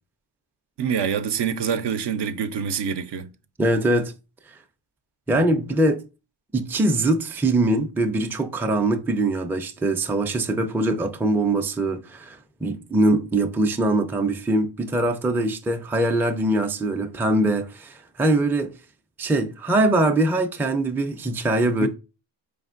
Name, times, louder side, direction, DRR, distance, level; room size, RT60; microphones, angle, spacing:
voice 1, 0.8-3.3 5.3-5.4 21.8-21.9, right 7 dB, 60° right, 0.5 m, -26 dB
voice 2, 3.6-4.1 5.3-6.0 6.5-18.7 19.2-21.9, right 2 dB, 5° right, 0.4 m, -22 dB
4.3 x 3.3 x 2.4 m
cardioid pair, 55°, 46 cm